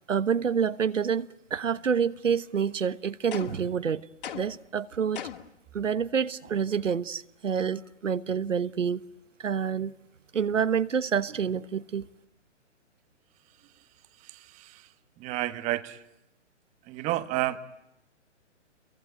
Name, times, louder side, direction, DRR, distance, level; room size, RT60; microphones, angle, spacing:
voice 1, 0.1-4.1 4.3-5.2 5.7-9.0 9.4-9.9 10.3-12.1, right 7 dB, 80° right, 1.2 m, -28 dB
sound 1, 3.3-3.7 4.2-4.7 5.1-5.6, left 10 dB, 45° left, 2.4 m, -39 dB
voice 2, 14.2-14.9 15.2-16.0 16.9-17.8, right 16 dB, 20° right, 1.3 m, -31 dB
29.0 x 23.0 x 9.0 m
hypercardioid pair, 140°, 37 cm